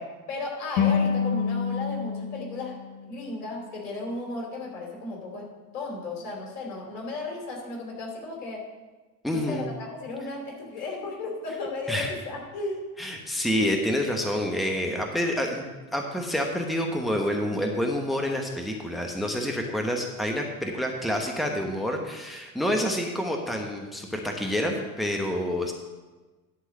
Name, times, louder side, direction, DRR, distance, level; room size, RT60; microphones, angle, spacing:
voice 1, 0.0-2.8 3.0-8.7 9.3-12.8, left 3 dB, 65° left, 0 dB, 3.2 m, -35 dB
sound 1, 0.8-3.9, left 6 dB, 45° left, 1.2 m, -28 dB
voice 2, 9.2-9.7 11.9-12.1 13.0-25.7, equal, ahead, 2 dB, 1.2 m, -28 dB
11.5 x 3.9 x 7.4 m, 1.2 s
hypercardioid pair, 75°, 44 cm